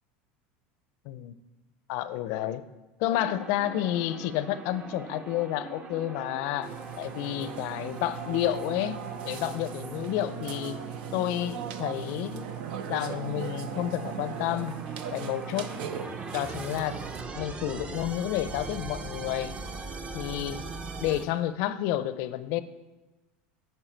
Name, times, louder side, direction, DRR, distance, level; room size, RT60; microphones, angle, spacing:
voice 1, 1.9-2.6 3.0-9.0 9.2-10.8 11.1-12.5 12.9-14.7 15.1-15.8 16.3-17.0 17.3-19.6 20.1-20.6 21.0-22.6, left 13 dB, 65° left, 14 dB, 0.5 m, -30 dB
sound 1, 3.1-21.2, right 3 dB, 20° right, 0.6 m, -41 dB
Burping eructation, 6.6-17.2, right 9 dB, 80° right, 0.6 m, -39 dB
9.6 x 4.7 x 4.4 m, 1.1 s
supercardioid pair, 130°, 5 cm